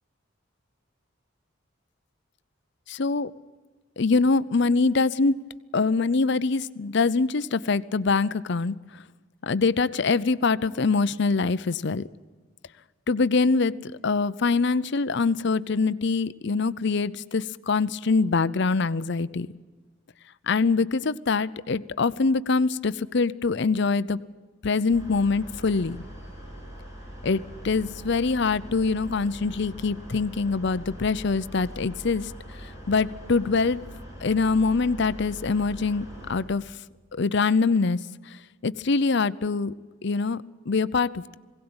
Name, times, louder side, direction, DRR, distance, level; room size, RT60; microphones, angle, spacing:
voice 1, 2.9-3.3 4.0-5.4 5.7-8.8 9.4-12.1 13.1-19.5 20.5-24.2 24.6-26.0 27.2-32.3 32.9-33.8 34.2-36.7 37.1-38.0 38.6-39.8 40.0-41.4, left 4 dB, 60° left, 15 dB, 0.6 m, -24 dB
sound 1, 24.9-36.4, equal, 15° right, 7.1 m, -42 dB
21.5 x 17.5 x 8.8 m, 1.4 s
head